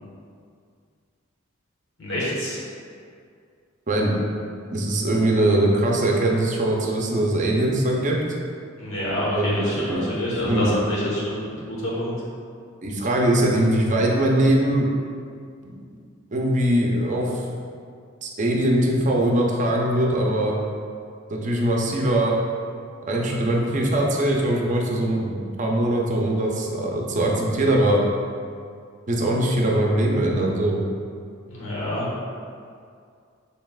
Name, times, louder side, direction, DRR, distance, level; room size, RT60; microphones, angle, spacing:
voice 1, 2.0-2.6 8.8-12.1 31.5-32.1, left 1 dB, 70° left, -6 dB, 1.2 m, -27 dB
voice 2, 3.9-4.2 4.7-8.2 9.3-10.2 10.4-10.7 12.8-14.9 15.6-15.7 16.3-17.4 18.2-20.5 21.3-22.4 23.1-28.0 29.1-30.8, right 1 dB, 40° right, -1 dB, 0.6 m, -21 dB
6.7 x 3.4 x 2.3 m, 2.2 s
head